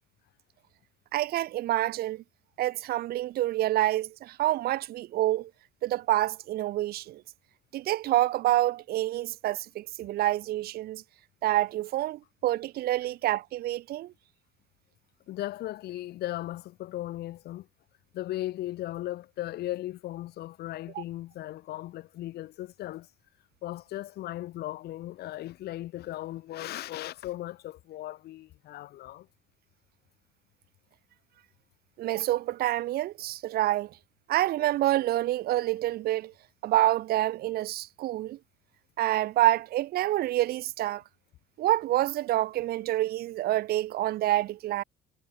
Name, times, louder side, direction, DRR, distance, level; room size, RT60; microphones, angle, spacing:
voice 1, 1.1-2.2 2.6-5.5 5.8-7.2 7.7-11.0 11.4-14.1 20.9-21.0 32.0-33.9 34.3-36.3 36.6-38.4 39.0-41.0 41.6-44.8, right 15 dB, 65° right, 0.7 m, -27 dB
voice 2, 15.3-17.7 18.1-23.1 23.6-29.3, left 15 dB, 75° left, 2.1 m, -37 dB
cardioid pair, 110°, 17 cm